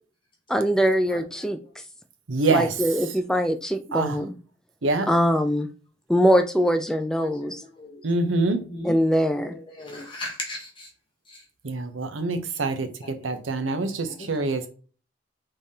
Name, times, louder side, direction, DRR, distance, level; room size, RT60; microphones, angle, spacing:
voice 1, 0.5-1.6 2.5-4.4 5.1-5.7 6.1-7.6 8.8-9.6, equal, 5° left, 0.3 m, -22 dB
voice 2, 2.3-2.7 3.9-4.2 4.8-5.1 8.0-8.6 11.6-14.7, right 3 dB, 80° right, 0.7 m, -25 dB
voice 3, 7.1-8.0 8.5-9.0 9.8-10.9 11.3-11.4 13.0-13.1 14.0-14.3, left 2 dB, 25° left, 1.0 m, -37 dB
5.4 x 3.4 x 2.8 m
head